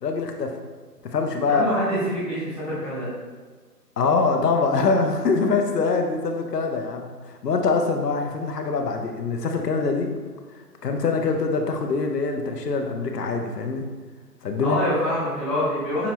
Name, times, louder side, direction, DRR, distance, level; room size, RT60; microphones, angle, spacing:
voice 1, 0.0-0.5 1.0-1.6 4.0-10.1 10.8-13.9 14.4-14.8, left 4 dB, 75° left, 4 dB, 0.7 m, -24 dB
voice 2, 1.5-3.1 14.6-16.1, left 1 dB, 10° right, -18 dB, 0.9 m, -25 dB
5.9 x 2.1 x 2.8 m, 1.4 s
figure-of-eight pair, 165°, 49 cm